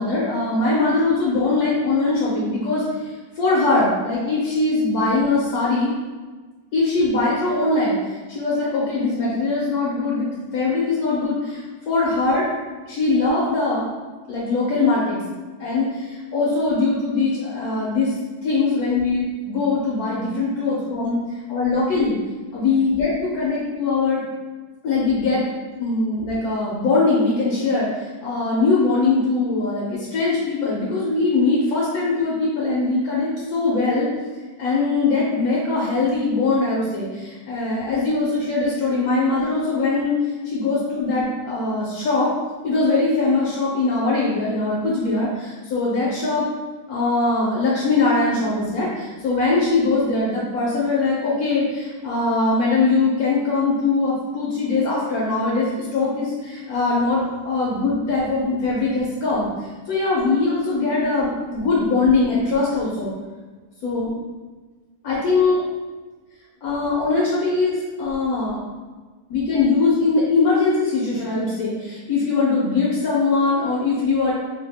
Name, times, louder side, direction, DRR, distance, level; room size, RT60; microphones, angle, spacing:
voice 1, 0.0-5.9 6.7-12.5 12.9-13.9 14.3-15.2 15.6-18.1 18.4-21.2 21.5-22.2 22.5-24.2 24.8-25.4 25.8-34.1 34.6-40.2 40.4-42.3 42.6-46.5 46.9-63.1 63.8-64.1 65.0-65.6 66.6-68.6 69.3-74.3, left 3 dB, 70° left, -6 dB, 1.0 m, -21 dB
2.7 x 2.3 x 3.3 m, 1.3 s
omnidirectional pair, 1.7 m